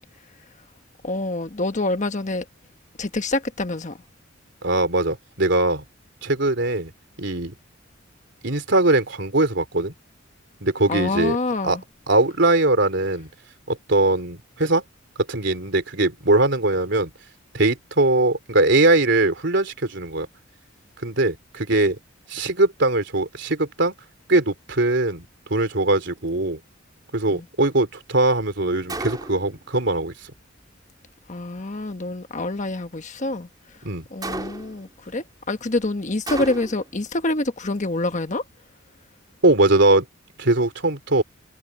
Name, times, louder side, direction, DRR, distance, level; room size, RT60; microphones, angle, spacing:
voice 1, 1.0-2.4 3.0-4.0 10.9-11.8 27.3-27.4 31.3-33.5 34.1-38.4, left 2 dB, 40° left, 1.3 m, -26 dB
voice 2, 4.6-5.8 6.2-6.9 7.2-7.5 8.4-9.9 10.6-11.4 11.6-11.8 12.1-13.3 13.7-14.8 15.3-17.1 17.5-20.3 21.0-22.0 22.3-23.9 24.3-25.3 25.5-26.6 27.1-30.1 33.8-34.1 39.4-40.1 40.4-41.2, right 2 dB, 60° right, 3.6 m, -21 dB
Gunshot gunfire, 28.9-29.6 34.2-34.9 36.3-37.0, right 2 dB, 20° right, 4.0 m, -32 dB
head